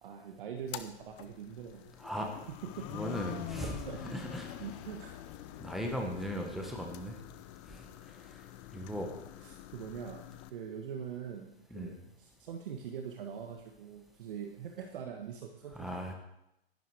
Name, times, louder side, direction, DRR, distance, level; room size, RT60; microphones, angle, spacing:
voice 1, 0.0-1.9 2.4-3.2 3.6-4.0 4.6-5.1 9.4-16.1, right 7 dB, 55° right, 4 dB, 1.5 m, -43 dB
sound 1, 0.6-10.5, left 13 dB, 30° left, 0.7 m, -46 dB
voice 2, 2.0-2.3 2.9-3.7 4.1-4.5 5.6-7.2 7.7-7.8 8.7-9.1 11.7-11.9 15.7-16.1, equal, ahead, 1 dB, 1.4 m, -37 dB
11.0 x 11.0 x 4.9 m, 0.84 s
hypercardioid pair, 135°, 31 cm